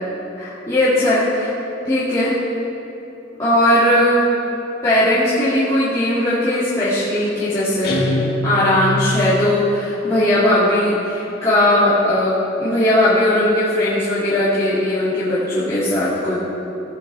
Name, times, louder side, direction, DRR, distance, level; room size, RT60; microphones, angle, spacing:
voice 1, 0.4-1.5 1.8-2.4 3.4-4.3 4.8-8.0 8.4-16.4, left 1 dB, 20° left, -14 dB, 2.4 m, -18 dB
Guitar, 7.8-9.1, left 1 dB, 55° left, 1.5 m, -23 dB
18.0 x 8.3 x 3.4 m, 3.0 s
head